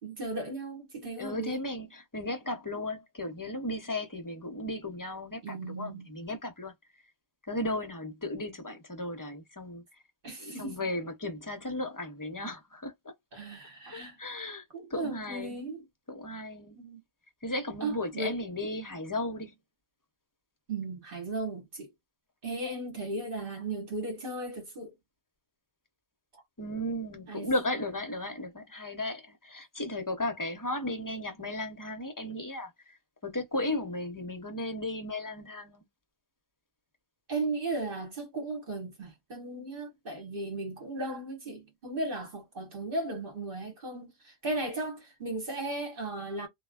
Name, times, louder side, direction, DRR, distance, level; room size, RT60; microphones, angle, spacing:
voice 1, 0.0-1.6 5.4-6.1 10.2-10.8 13.3-14.2 14.7-15.8 16.7-17.0 17.8-18.3 20.7-21.9 22.4-24.9 26.3-26.4 27.3-27.5 37.3-46.5, right 2 dB, 60° right, 1.5 m, -36 dB
voice 2, 1.2-6.7 7.4-9.8 10.4-13.1 13.9-14.6 14.9-15.6 16.1-16.8 17.4-19.6 26.6-33.0 33.2-35.8, left 1 dB, 25° left, 0.5 m, -35 dB
3.2 x 2.1 x 2.3 m
omnidirectional pair, 1.0 m